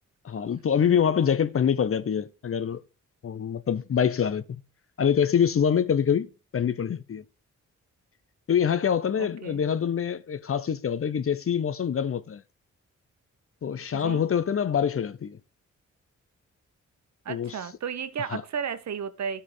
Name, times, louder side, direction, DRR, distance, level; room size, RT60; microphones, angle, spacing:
voice 1, 0.2-2.8 3.2-4.4 5.0-7.2 8.5-12.4 13.6-15.4 17.3-17.5 18.3-18.4, left 8 dB, 45° left, 0.7 m, -25 dB
voice 2, 9.2-9.6 13.9-14.2 17.2-19.4, right 7 dB, 65° right, 1.0 m, -33 dB
13.0 x 5.6 x 3.2 m
cardioid pair, 70°, 30 cm